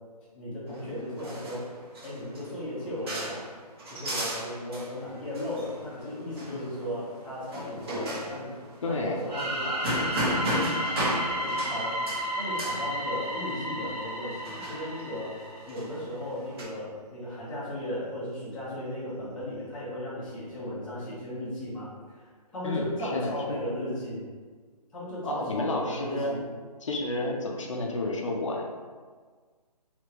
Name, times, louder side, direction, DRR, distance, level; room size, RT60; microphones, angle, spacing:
voice 1, 0.3-1.7 2.0-3.4 3.9-8.5 8.8-15.4 15.7-22.3 22.5-24.2 24.9-26.4, left 1 dB, 5° left, -13 dB, 0.5 m, -36 dB
sound 1, 0.7-16.6, equal, 35° right, 1.0 m, -36 dB
voice 2, 8.8-9.2 22.6-23.5 25.2-26.4 26.8-28.6, left 2 dB, 50° left, 0 dB, 0.5 m, -31 dB
sound 2, 9.3-15.9, equal, 75° right, 1.4 m, -33 dB
3.3 x 2.8 x 2.8 m, 1.5 s
figure-of-eight pair, 155°, 21 cm